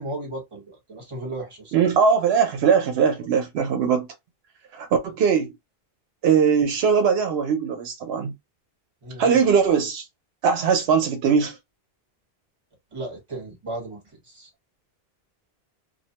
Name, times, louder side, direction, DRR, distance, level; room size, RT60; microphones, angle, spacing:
voice 1, 0.0-1.7 3.1-3.3 9.0-9.4 12.9-14.0 14.2-14.5, right 2 dB, 30° right, 1.2 m, -35 dB
voice 2, 1.7-4.1 4.7-5.5 6.2-8.3 9.2-10.0 10.4-11.6, right 6 dB, 80° right, 0.8 m, -20 dB
2.5 x 2.1 x 2.8 m
omnidirectional pair, 1.0 m